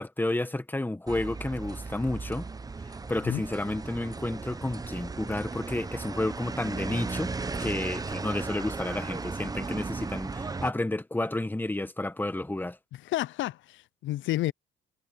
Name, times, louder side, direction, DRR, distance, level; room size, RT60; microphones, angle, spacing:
voice 1, 0.0-2.5 3.1-7.3 7.6-12.8, left 2 dB, 10° left, 1.4 m, -31 dB
sound 1, 1.1-10.7, right 4 dB, 20° right, 0.7 m, -36 dB
voice 2, 12.9-14.5, left 15 dB, 75° left, 0.4 m, -31 dB
cardioid pair, 90°, 20 cm